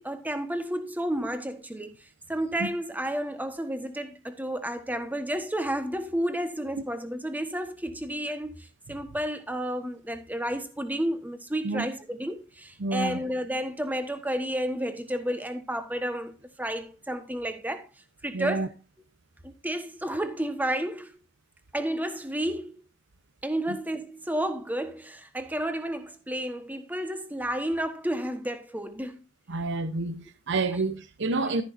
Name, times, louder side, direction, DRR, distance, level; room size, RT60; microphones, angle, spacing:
voice 1, 0.0-16.3 16.6-17.9 18.2-18.7 19.4-21.2 21.7-22.8 23.4-29.2 30.7-30.8 31.4-31.5, right 1 dB, 10° right, 1.2 m, -31 dB
voice 2, 12.8-13.2 18.3-18.7 23.7-23.8 29.5-31.6, right 3 dB, 60° right, 0.8 m, -29 dB
13.0 x 10.5 x 2.6 m
head